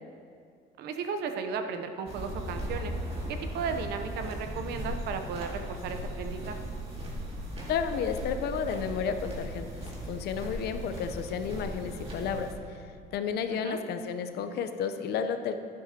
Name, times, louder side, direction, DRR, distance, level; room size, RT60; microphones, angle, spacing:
voice 1, 0.8-2.9 3.3-6.6 13.5-13.8, right 5 dB, 75° right, 7 dB, 0.8 m, -35 dB
sound 1, 2.1-12.5, equal, 35° right, 2.3 m, -37 dB
voice 2, 7.7-9.7 10.1-12.5 13.1-15.5, left 7 dB, 75° left, 8 dB, 0.7 m, -32 dB
11.5 x 10.5 x 2.9 m, 2.3 s
cardioid pair, 110°, 17 cm